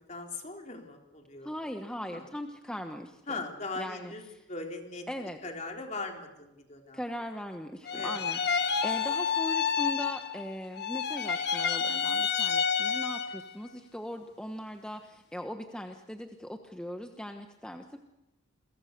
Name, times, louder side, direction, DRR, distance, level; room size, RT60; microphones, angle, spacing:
voice 1, 0.1-1.5 2.1-2.3 3.3-5.1 5.4-7.0 7.9-8.8, left 3 dB, 35° left, 2 dB, 3.8 m, -40 dB
voice 2, 1.4-3.4 3.8-4.1 5.1-5.4 6.9-8.4 8.8-18.0, equal, 5° left, 4 dB, 1.2 m, -39 dB
sound 1, 7.9-10.5 10.8-13.5, left 6 dB, 50° left, 1.6 m, -29 dB
29.5 x 23.0 x 6.8 m, 0.95 s
head